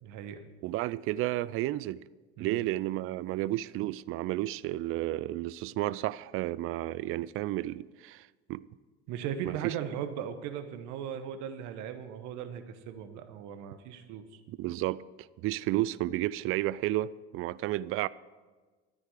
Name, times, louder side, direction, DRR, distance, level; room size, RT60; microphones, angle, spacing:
voice 1, 0.0-0.4 2.4-2.6 9.1-14.4, right 8 dB, 55° right, 1.2 m, -38 dB
voice 2, 0.6-2.0 2.4-8.6 9.5-9.7 14.5-15.0 15.4-18.1, right 16 dB, 40° right, 0.4 m, -32 dB
12.5 x 9.8 x 4.9 m
hypercardioid pair, 75°, 35 cm